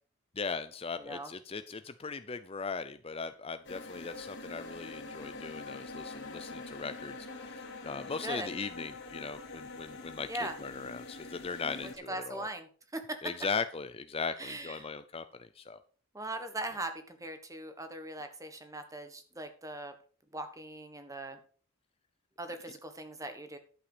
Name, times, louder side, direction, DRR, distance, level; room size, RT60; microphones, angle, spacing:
voice 1, 0.4-12.5 13.2-15.8, left 5 dB, 25° left, 11 dB, 0.5 m, -39 dB
voice 2, 1.0-1.3 8.2-8.5 10.3-10.5 12.1-13.2 14.4-14.9 16.1-19.9 20.3-21.4 22.4-23.6, right 1 dB, 15° right, 8 dB, 1.4 m, -40 dB
sound 1, 3.6-12.0, left 3 dB, 55° left, 2.6 m, -45 dB
11.5 x 7.8 x 5.0 m, 0.41 s
head